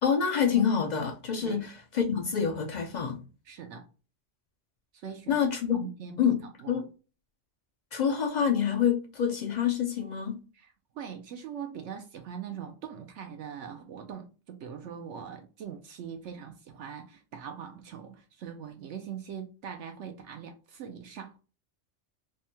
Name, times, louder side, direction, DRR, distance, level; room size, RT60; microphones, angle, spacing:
voice 1, 0.0-3.2 5.3-5.8 6.2-6.8 7.9-10.4, left 7 dB, 60° left, 0.4 m, -27 dB
voice 2, 3.5-3.9 4.9-5.4 5.7-6.3 6.6-6.8 10.5-21.4, right 8 dB, 75° right, 0.9 m, -42 dB
3.4 x 2.1 x 2.7 m
omnidirectional pair, 1.3 m